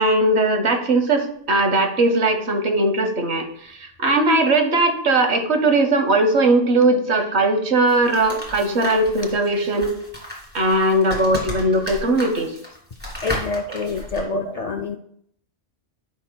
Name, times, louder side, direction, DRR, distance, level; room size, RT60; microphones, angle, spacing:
voice 1, 0.0-9.9 10.5-12.5, right 2 dB, 65° right, 6 dB, 1.3 m, -19 dB
sound 1, 7.9-14.2, left 1 dB, 10° right, 2.4 m, -33 dB
voice 2, 13.2-15.0, left 4 dB, 65° left, 5 dB, 0.4 m, -27 dB
15.0 x 5.5 x 2.2 m, 0.69 s
omnidirectional pair, 1.3 m